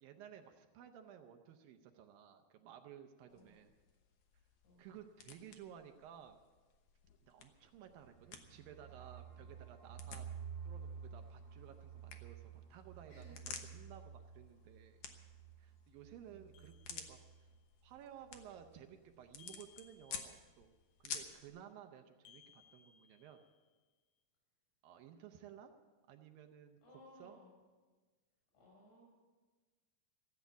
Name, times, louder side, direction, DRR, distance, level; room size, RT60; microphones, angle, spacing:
voice 1, 0.0-3.7 4.8-6.4 7.2-10.3 10.6-15.0 15.6-17.5 17.8-20.7 21.0-23.4 24.8-25.7 26.1-26.8 27.2-27.4, right 9 dB, 75° right, 6 dB, 2.5 m, -56 dB
voice 2, 3.2-3.6 4.6-4.9 13.1-13.5 16.2-16.6 26.8-27.6 28.5-29.1, equal, 50° left, -2 dB, 7.4 m, -61 dB
sound 1, 3.3-21.5, left 7 dB, 65° left, 1.5 m, -54 dB
sound 2, 8.0-17.6 17.9-18.0 18.3-18.7, right 7 dB, 35° right, 1.8 m, -52 dB
sound 3, 16.5-17.5 19.4-20.7 22.2-23.8, left 8 dB, 85° left, 2.7 m, -65 dB
15.5 x 8.3 x 9.1 m, 1.3 s
omnidirectional pair, 4.3 m